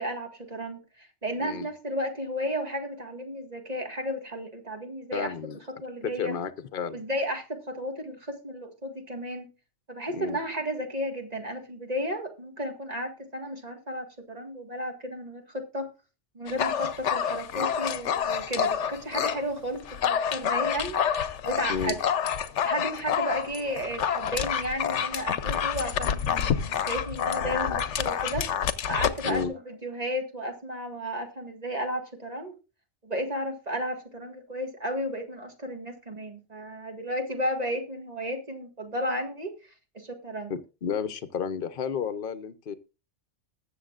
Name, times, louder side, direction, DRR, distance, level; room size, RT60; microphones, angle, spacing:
voice 1, 0.0-5.3 5.8-6.3 6.9-9.5 9.9-15.9 16.4-22.0 22.6-28.5 28.9-32.5 33.0-39.5 39.9-40.5, equal, 35° right, 4 dB, 1.9 m, -33 dB
voice 2, 5.1-5.6 6.0-7.0 10.1-10.4 21.7-22.0 29.3-29.5 40.8-42.7, left 6 dB, 50° left, 13 dB, 1.0 m, -31 dB
Dog, 16.5-19.4 19.8-29.4, left 8 dB, 80° left, 1.1 m, -28 dB
20.5 x 7.2 x 2.5 m, 0.31 s
omnidirectional pair, 1.2 m